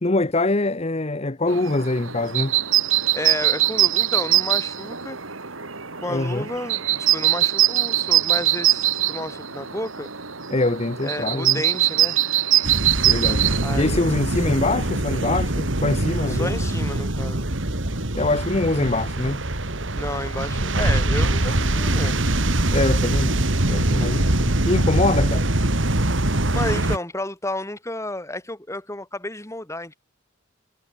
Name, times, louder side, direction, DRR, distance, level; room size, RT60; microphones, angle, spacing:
voice 1, 0.0-2.5 6.1-6.5 10.5-11.6 13.0-13.4 13.8-16.5 18.1-19.4 22.7-23.4 23.7-25.5, left 2 dB, 30° left, 1.0 m, -24 dB
sound 1, 1.5-15.0, right 13 dB, 85° right, 3.5 m, -23 dB
voice 2, 3.1-5.2 6.0-10.1 11.0-12.3 13.6-14.3 16.3-17.5 19.9-22.4 26.2-29.9, left 1 dB, 15° left, 3.7 m, -32 dB
sound 2, 12.6-27.0, right 1 dB, 70° right, 2.7 m, -23 dB
head